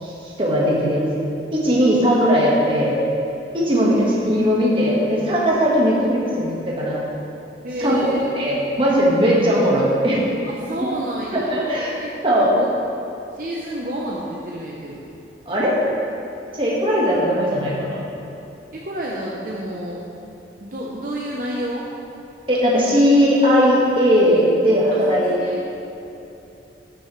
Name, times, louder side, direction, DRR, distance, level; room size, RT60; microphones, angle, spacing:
voice 1, 0.0-1.2 1.5-3.0 3.5-7.0 7.8-8.1 8.3-10.3 11.3-11.9 12.2-12.5 15.5-15.8 16.5-18.1 22.5-25.4, equal, 30° right, -5 dB, 1.5 m, -18 dB
voice 2, 7.6-8.2 10.4-11.6 12.0-12.1 12.5-12.7 13.3-15.0 18.7-20.0 20.6-21.9 24.9-25.6, right 1 dB, 50° right, -4 dB, 0.8 m, -29 dB
12.5 x 6.3 x 3.2 m, 2.9 s
head